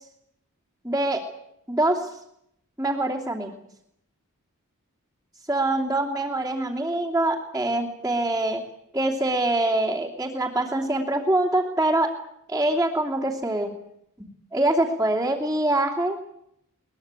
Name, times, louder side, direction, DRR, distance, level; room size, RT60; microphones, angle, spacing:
voice 1, 0.8-1.2 1.7-2.1 2.8-3.5 5.5-8.6 8.9-12.1 12.5-13.7 14.2-16.2, right 1 dB, 10° right, -6 dB, 2.9 m, -24 dB
22.5 x 20.5 x 9.0 m, 0.76 s
head